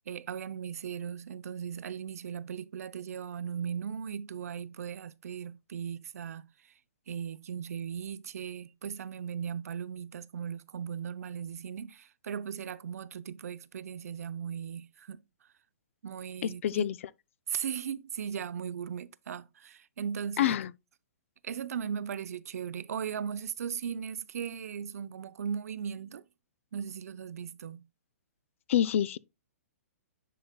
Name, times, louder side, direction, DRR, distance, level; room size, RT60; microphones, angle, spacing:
voice 1, 0.1-6.7 7.1-15.2 16.0-16.9 17.5-20.6 21.4-26.3 26.7-27.8, right 7 dB, 75° right, 0.5 m, -37 dB
voice 2, 16.6-17.0 20.4-20.7 28.7-29.2, left 10 dB, 55° left, 0.4 m, -26 dB
10.0 x 4.8 x 2.2 m
hypercardioid pair, 155°, 8 cm